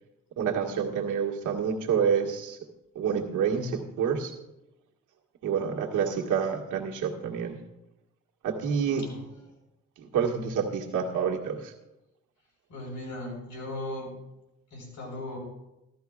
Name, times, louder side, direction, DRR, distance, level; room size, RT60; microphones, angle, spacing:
voice 1, 0.4-2.6 2.9-4.3 5.4-7.6 8.4-9.0 10.0-11.7, right 7 dB, 80° right, 1 dB, 1.6 m, -28 dB
voice 2, 12.7-14.2 14.7-15.4, left 1 dB, 70° left, 1 dB, 4.3 m, -37 dB
15.0 x 12.5 x 2.4 m, 0.92 s
cardioid pair, 90°, 30 cm